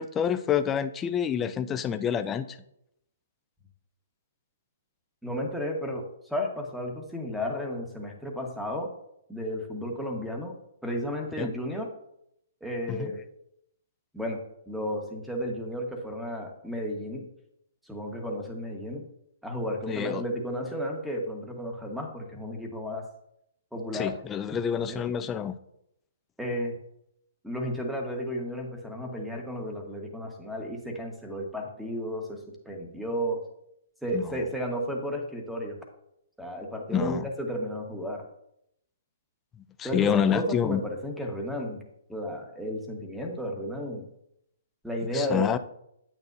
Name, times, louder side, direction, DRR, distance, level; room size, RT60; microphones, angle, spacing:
voice 1, 0.0-2.6 11.4-11.5 12.9-13.1 19.9-20.2 23.9-25.6 34.1-34.4 36.9-37.3 39.8-40.8 45.1-45.6, left 8 dB, 20° left, 10 dB, 0.5 m, -27 dB
voice 2, 5.2-8.9 9.3-10.5 10.8-11.9 12.6-13.2 14.1-14.4 14.7-17.3 17.8-19.1 19.4-23.1 23.7-24.1 24.8-25.0 26.4-26.7 27.4-33.4 34.0-35.8 36.4-38.2 39.8-41.8 42.1-44.1 44.8-45.6, equal, ahead, 1 dB, 1.4 m, -33 dB
8.9 x 8.6 x 2.7 m, 0.77 s
hypercardioid pair, 140°, 0 cm